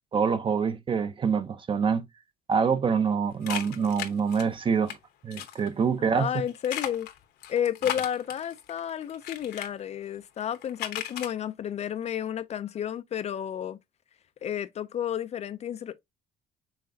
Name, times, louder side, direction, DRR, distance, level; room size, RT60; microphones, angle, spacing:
voice 1, 0.1-2.1 2.5-5.0 5.2-6.3, right 6 dB, 30° right, 0.6 m, -25 dB
sound 1, 3.4-4.9 5.3-5.7 6.5-9.7 10.4-11.3, left 11 dB, 75° left, 0.9 m, -36 dB
voice 2, 6.1-7.1 7.5-13.8 14.4-16.0, left 9 dB, 40° left, 0.4 m, -31 dB
5.6 x 3.2 x 2.7 m
cardioid pair, 110°, 17 cm